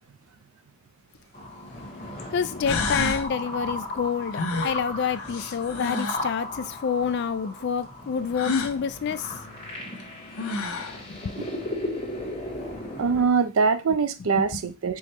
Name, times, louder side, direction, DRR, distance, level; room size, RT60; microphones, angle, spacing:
sound 1, 1.1-1.2 2.2-2.3 2.6-3.3 4.3-6.3 8.3-8.8 10.0-10.1 10.4-11.0, left 4 dB, 80° left, 0.7 m, -29 dB
sound 2, 1.3-13.3, left 1 dB, 25° left, 1.3 m, -36 dB
voice 1, 2.3-9.3 11.1-11.4 14.4-14.5, left 6 dB, 50° left, 0.3 m, -28 dB
voice 2, 13.0-15.0, right 5 dB, 70° right, 0.4 m, -23 dB
4.6 x 2.2 x 4.3 m
head